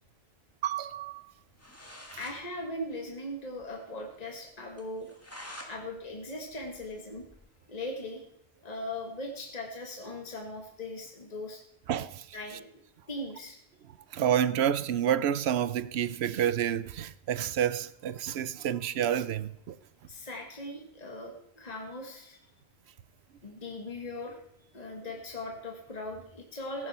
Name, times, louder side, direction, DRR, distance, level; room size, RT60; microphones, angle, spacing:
voice 1, 0.6-1.3 11.9-12.4 14.1-19.8, right 10 dB, 85° right, 0.9 m, -29 dB
sound 1, 1.3-1.4 1.6-2.4 2.7-2.8 3.1-3.2 3.6-3.7 4.1-4.2 4.8-5.7 6.1-7.5, equal, 15° left, 1.8 m, -47 dB
voice 2, 2.2-5.1 5.7-7.2 7.7-8.2 8.6-11.6 12.3-12.7 13.1-13.6 20.1-22.4 23.4-26.9, left 1 dB, 40° left, 1.8 m, -39 dB
15.0 x 11.0 x 4.2 m
omnidirectional pair, 1.1 m